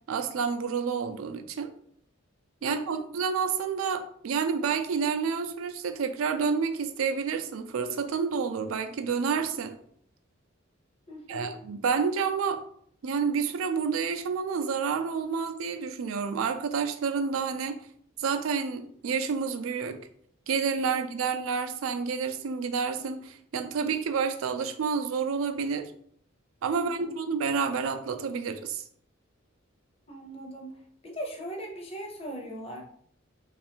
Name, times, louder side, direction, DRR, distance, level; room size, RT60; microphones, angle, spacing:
voice 1, 0.1-1.7 2.6-9.7 11.3-12.6 13.0-17.8 18.2-20.0 20.5-25.9 26.6-28.8, right 5 dB, 80° right, 8 dB, 0.4 m, -29 dB
voice 2, 2.6-3.0 11.1-11.5 20.9-21.0 26.7-27.1 30.1-32.8, right 1 dB, 30° left, 1 dB, 0.7 m, -40 dB
3.2 x 2.4 x 4.4 m, 0.63 s
head